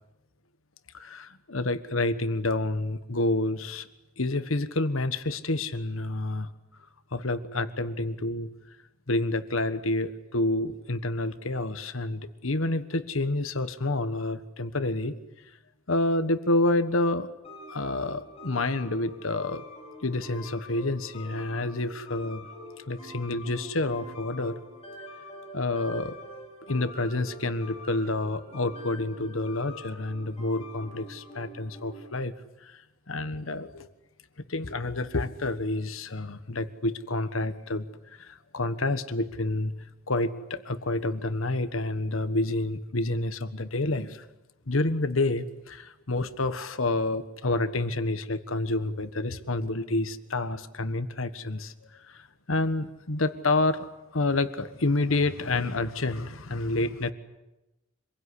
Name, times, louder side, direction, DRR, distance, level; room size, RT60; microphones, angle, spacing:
voice 1, 0.9-3.9 4.2-6.5 7.1-8.5 9.1-15.2 15.9-17.3 17.7-19.6 20.0-22.4 22.9-24.6 25.5-26.2 26.7-32.3 32.6-32.8 33.1-33.9 34.5-39.7 40.1-44.2 44.7-53.9 54.1-57.1, left 2 dB, 80° left, 11 dB, 1.5 m, -29 dB
sound 1, 17.4-32.2, left 1 dB, 30° left, 5.9 m, -45 dB
26.5 x 22.0 x 9.9 m, 1.0 s
head